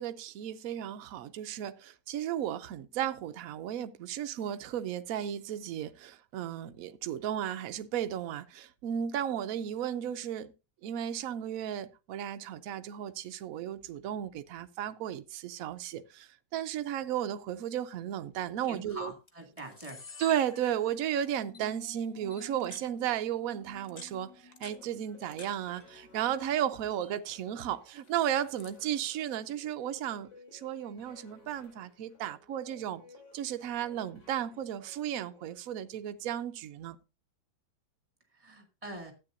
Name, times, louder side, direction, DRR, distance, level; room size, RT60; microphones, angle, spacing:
voice 1, 0.0-10.5 10.8-19.1 20.2-33.0 33.3-37.0, right 10 dB, 75° right, 0.8 m, -34 dB
Camera, 18.4-18.7 19.3-19.4 19.6-21.1 21.5-21.7 22.3-22.9 23.7-25.5 25.8-26.5 26.8-27.1 27.9-28.8, left 4 dB, 60° left, 0.4 m, -50 dB
voice 2, 18.6-20.0 38.3-39.1, right 1 dB, 15° right, 2.1 m, -44 dB
sound 1, 21.3-26.6, left 2 dB, 20° left, 6.7 m, -54 dB
sound 2, 24.0-35.6, left 3 dB, 80° left, 3.7 m, -58 dB
12.5 x 8.5 x 2.5 m
omnidirectional pair, 2.1 m